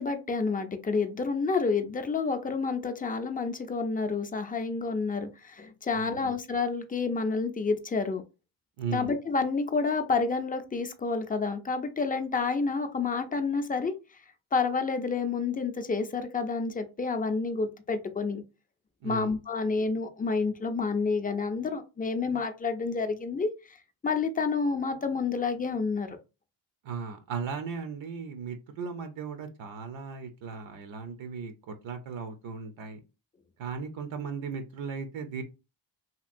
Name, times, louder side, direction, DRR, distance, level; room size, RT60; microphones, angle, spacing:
voice 1, 0.0-8.2 8.9-13.9 14.5-18.4 19.0-23.8 24.0-26.2, left 4 dB, 20° left, 0.4 m, -29 dB
voice 2, 5.9-6.4 8.8-9.1 19.0-19.3 26.8-33.0 33.6-35.4, right 5 dB, 65° right, 0.6 m, -37 dB
2.9 x 2.8 x 2.5 m
cardioid pair, 80°, 49 cm